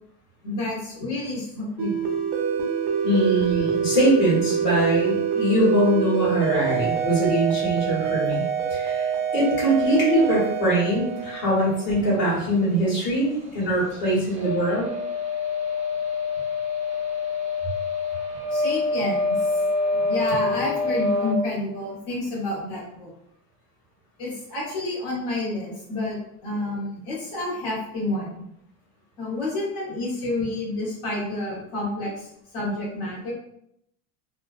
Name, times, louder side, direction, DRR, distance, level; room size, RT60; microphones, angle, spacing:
voice 1, 0.4-2.1 18.5-19.6 19.9-23.1 24.2-28.3 29.2-33.3, left 2 dB, 55° left, -6 dB, 1.4 m, -29 dB
sound 1, 1.8-12.1, right 7 dB, 60° right, 0.7 m, -26 dB
voice 2, 3.0-8.4 8.7-14.9, right 1 dB, 25° left, -8 dB, 1.3 m, -22 dB
sound 2, 14.4-21.3, left 3 dB, 15° right, 0.7 m, -26 dB
2.7 x 2.2 x 2.5 m, 0.74 s
supercardioid pair, 135°, 46 cm